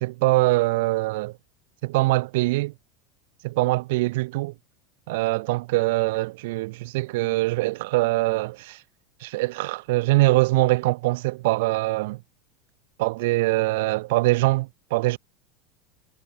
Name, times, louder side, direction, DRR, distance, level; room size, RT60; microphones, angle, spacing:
voice 1, 0.0-1.3 1.8-2.7 3.4-4.5 5.1-8.8 9.2-12.2 13.0-15.2, right 21 dB, 60° right, 1.2 m, -23 dB
supercardioid pair, 180°, 0 cm